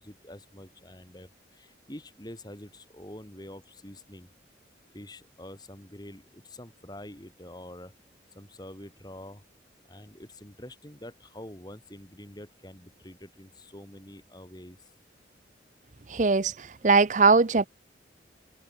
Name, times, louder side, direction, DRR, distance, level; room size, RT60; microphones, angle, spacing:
voice 1, 0.0-4.3 4.9-7.9 8.3-9.4 9.8-14.9, left 1 dB, 20° left, 3.7 m, -46 dB
voice 2, 16.1-17.7, right 4 dB, 40° right, 0.6 m, -21 dB
head